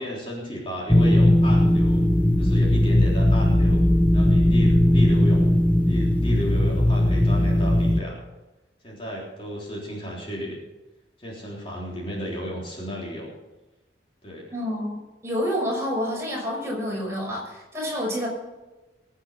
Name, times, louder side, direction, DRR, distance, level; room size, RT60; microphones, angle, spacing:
voice 1, 0.0-2.0 2.4-3.8 4.1-5.5 5.8-8.2 8.8-10.6 11.2-13.3 14.2-14.5, equal, 30° left, -4 dB, 3.7 m, -33 dB
sound 1, 0.9-8.0, left 1 dB, 10° left, 0.7 m, -18 dB
voice 2, 14.5-18.3, equal, 15° right, -3 dB, 6.0 m, -28 dB
21.5 x 8.7 x 5.7 m, 1.1 s
head